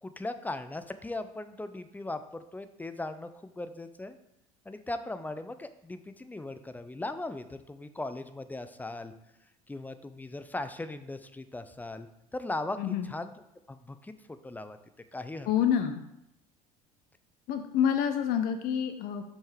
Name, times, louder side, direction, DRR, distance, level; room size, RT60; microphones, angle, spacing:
voice 1, 0.0-4.2 4.7-9.1 9.7-12.1 12.3-13.3 13.7-14.1 14.4-14.8 15.1-15.5, left 2 dB, 10° left, 10 dB, 0.5 m, -38 dB
voice 2, 15.5-16.0 17.5-19.2, left 8 dB, 50° left, 7 dB, 0.6 m, -27 dB
7.3 x 5.5 x 3.4 m, 0.83 s
figure-of-eight pair, 65°, 19 cm